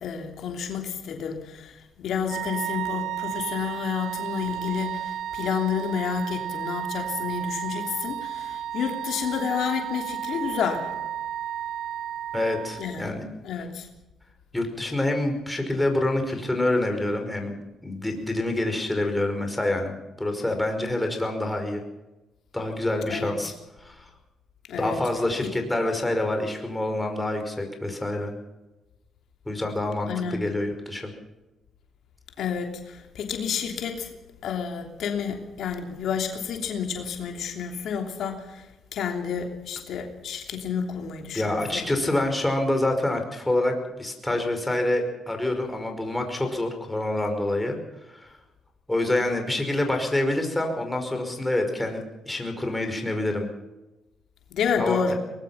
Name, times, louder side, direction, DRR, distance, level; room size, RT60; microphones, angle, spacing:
voice 1, 0.0-10.9 12.8-13.2 13.4-13.9 23.1-23.3 24.7-25.0 30.1-30.4 32.4-34.1 34.4-38.6 38.9-42.1 54.5-55.1, left 7 dB, 75° left, 3 dB, 3.1 m, -30 dB
Wind instrument woodwind instrument, 2.2-13.0, right 11 dB, 75° right, 1.3 m, -33 dB
voice 2, 12.3-13.3 14.5-21.8 22.5-23.5 23.8-24.1 24.8-28.3 29.5-31.1 41.3-47.8 48.1-48.4 48.9-53.5 54.8-55.1, left 1 dB, 10° left, 4 dB, 5.3 m, -27 dB
22.5 x 20.0 x 5.8 m, 1.0 s
cardioid pair, 90°, 0 cm